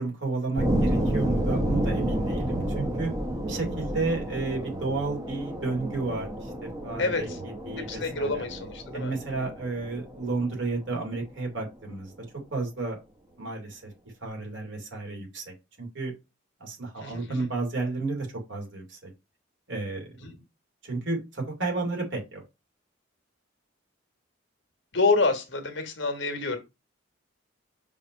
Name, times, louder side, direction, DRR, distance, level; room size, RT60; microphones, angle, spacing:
voice 1, 0.0-3.1 3.5-8.4 8.9-12.1 12.5-13.0 13.4-13.9 14.2-16.1 16.6-19.1 19.7-20.1 20.8-22.4, right 3 dB, 65° right, 2.7 m, -32 dB
sound 1, 0.6-11.3, right 1 dB, 15° right, 1.0 m, -30 dB
voice 2, 7.0-7.4 7.8-9.1 17.0-17.5 20.2-20.4 24.9-26.6, left 3 dB, 60° left, 1.3 m, -27 dB
5.4 x 3.2 x 5.4 m
head